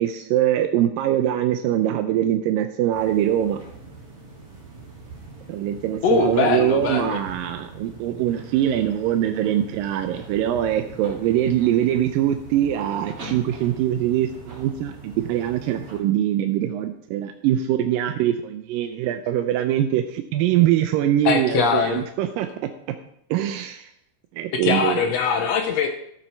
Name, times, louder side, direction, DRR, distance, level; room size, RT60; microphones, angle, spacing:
voice 1, 0.0-3.6 5.5-22.7 23.3-23.9 24.3-25.0, right 11 dB, 80° right, 7 dB, 2.2 m, -23 dB
sound 1, 2.9-16.0, right 3 dB, 40° right, 3.6 m, -42 dB
voice 2, 6.0-7.2 21.2-22.0 24.5-25.9, left 6 dB, 85° left, 4 dB, 1.4 m, -22 dB
13.5 x 7.1 x 4.4 m, 0.71 s
omnidirectional pair, 4.2 m